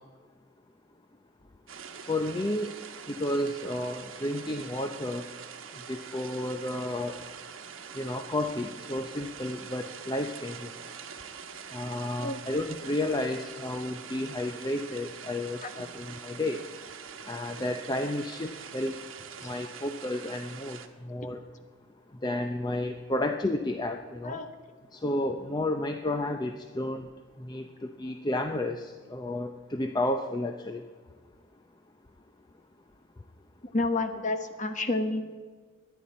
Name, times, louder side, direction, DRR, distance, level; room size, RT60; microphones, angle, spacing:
sound 1, 1.7-20.9, right 6 dB, 75° right, 1.1 m, -44 dB
voice 1, 2.1-2.7 3.1-5.3 5.9-7.2 7.9-10.7 11.7-16.6 17.3-18.9 19.4-21.4 22.2-24.4 24.9-27.1 27.4-30.8, left 1 dB, 20° left, 5 dB, 0.5 m, -32 dB
voice 2, 33.7-35.2, left 2 dB, 40° left, 7 dB, 1.1 m, -29 dB
23.0 x 10.0 x 4.2 m, 1.5 s
head